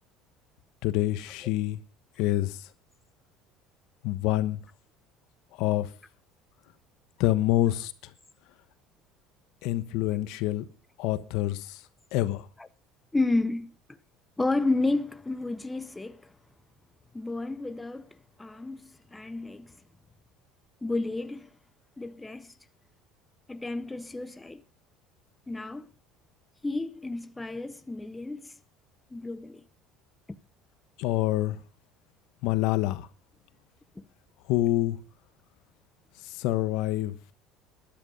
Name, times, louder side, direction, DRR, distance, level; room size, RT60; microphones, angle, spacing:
voice 1, 0.8-1.8 2.2-2.6 4.0-4.6 5.6-5.9 7.2-7.9 9.6-10.6 11.0-11.8 12.1-12.5 31.0-31.6 32.4-33.1 34.5-35.0 36.2-37.2, left 15 dB, 70° left, 1.1 m, -26 dB
voice 2, 13.1-13.7 14.4-16.3 17.1-18.1 18.4-19.8 20.8-21.5 22.0-22.5 23.5-24.6 25.5-25.9 26.6-28.5 29.1-29.6 34.0-34.1, left 2 dB, 10° left, 0.7 m, -31 dB
13.0 x 11.0 x 5.4 m
cardioid pair, 130°, 0 cm